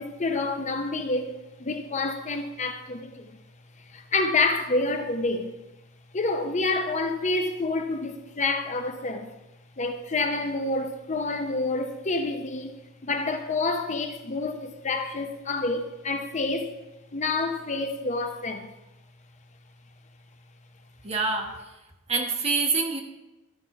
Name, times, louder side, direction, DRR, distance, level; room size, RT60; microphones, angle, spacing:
voice 1, 0.0-3.3 3.9-5.5 6.1-9.3 9.8-12.7 13.0-16.7 17.1-18.7, left 3 dB, 35° left, 0.6 m, -28 dB
voice 2, 21.0-21.5 22.1-23.0, right 4 dB, 30° right, 1.3 m, -25 dB
12.5 x 4.8 x 5.8 m
head